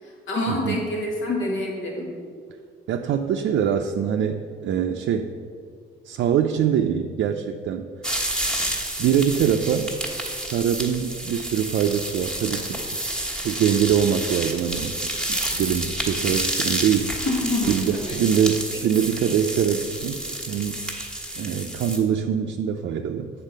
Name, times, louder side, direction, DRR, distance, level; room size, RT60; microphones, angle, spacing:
voice 1, 0.0-2.1 17.2-18.3, left 2 dB, 80° left, -1 dB, 2.0 m, -27 dB
voice 2, 2.9-5.3 6.0-7.9 9.0-9.9 10.3-12.8 13.4-15.0 15.3-17.1 17.7-20.8 21.4-23.3, right 8 dB, 70° right, 4 dB, 0.4 m, -23 dB
sound 1, 8.0-22.0, right 1 dB, 5° left, 1.3 m, -29 dB
7.3 x 4.1 x 6.5 m, 2.1 s
cardioid pair, 90°, 20 cm